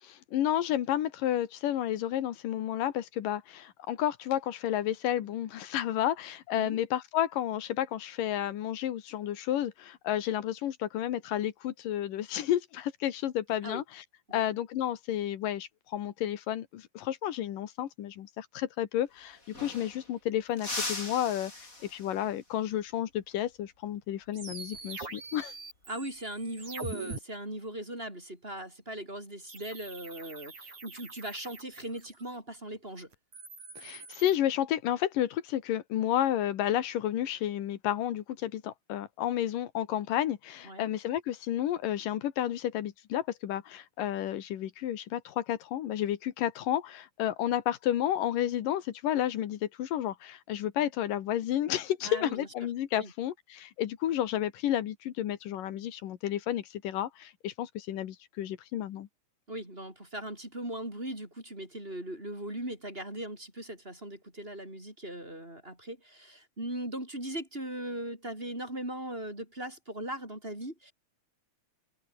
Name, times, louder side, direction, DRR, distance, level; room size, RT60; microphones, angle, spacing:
voice 1, 0.0-14.0 14.3-21.5 21.8-25.5 33.8-59.1, left 11 dB, 85° left, 3.2 m, -31 dB
sound 1, 18.9-19.0 19.2-20.2 20.6-22.3 24.8-25.1 26.5-27.0, left 2 dB, 25° left, 6.6 m, -39 dB
sound 2, 24.3-27.2 29.5-32.3 33.1-34.4, right 4 dB, 60° right, 8.3 m, -43 dB
voice 2, 25.9-33.1 40.6-40.9 52.0-52.5 52.9-53.1 59.5-70.9, right 1 dB, 15° right, 6.9 m, -39 dB
omnidirectional pair, 3.7 m